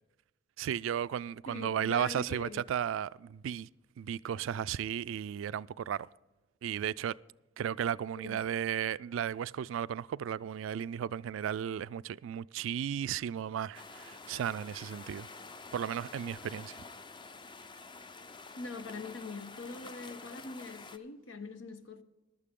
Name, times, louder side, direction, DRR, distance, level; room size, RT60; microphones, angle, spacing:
voice 1, 0.6-3.7 4.0-6.1 6.6-7.2 7.6-15.3 15.7-16.8, right 9 dB, 80° right, 0.3 m, -34 dB
voice 2, 1.5-2.6 8.2-8.4 18.6-22.0, left 3 dB, 85° left, 0.9 m, -43 dB
sound 1, 13.7-21.0, left 3 dB, 25° left, 0.5 m, -49 dB
15.0 x 12.0 x 3.7 m
head